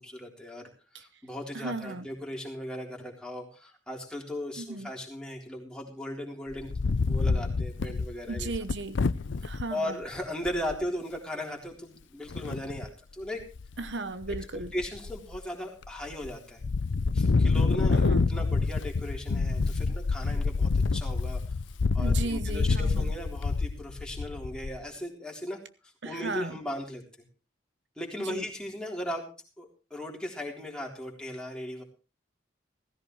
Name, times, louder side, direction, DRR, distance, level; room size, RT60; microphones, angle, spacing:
voice 1, 0.0-6.7 7.0-8.5 9.7-13.4 14.7-16.6 17.1-21.6 21.9-27.0 28.0-29.3 29.6-31.8, left 1 dB, 5° left, 0 dB, 3.7 m, -37 dB
voice 2, 1.5-2.1 4.6-4.9 8.3-9.0 9.4-10.0 13.8-14.7 17.9-18.3 22.0-23.1 26.0-26.6 28.2-28.5, right 3 dB, 70° right, 12 dB, 1.0 m, -35 dB
Wind, 6.5-9.6 10.2-10.3 10.5-10.8 12.3-12.9 13.4-13.9 14.2-15.4 15.9-16.3 16.6-24.8, left 4 dB, 80° left, 0.6 m, -27 dB
17.0 x 15.5 x 3.2 m, 0.33 s
head